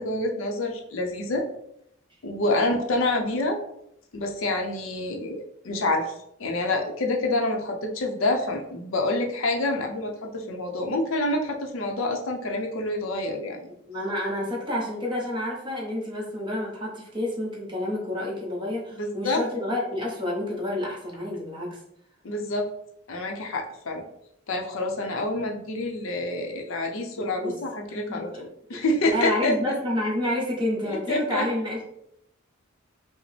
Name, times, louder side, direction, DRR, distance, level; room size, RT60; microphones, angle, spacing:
voice 1, 0.0-1.5 2.2-3.6 4.1-6.1 6.4-13.7 19.0-19.4 22.2-22.7 23.1-24.0 24.5-28.3 28.7-29.5 30.9-31.4, left 2 dB, 70° left, 2 dB, 0.6 m, -27 dB
voice 2, 13.9-21.8 27.1-27.6 27.9-28.5 28.7-31.9, left 1 dB, 25° right, -2 dB, 1.0 m, -29 dB
4.9 x 2.0 x 3.2 m, 0.76 s
head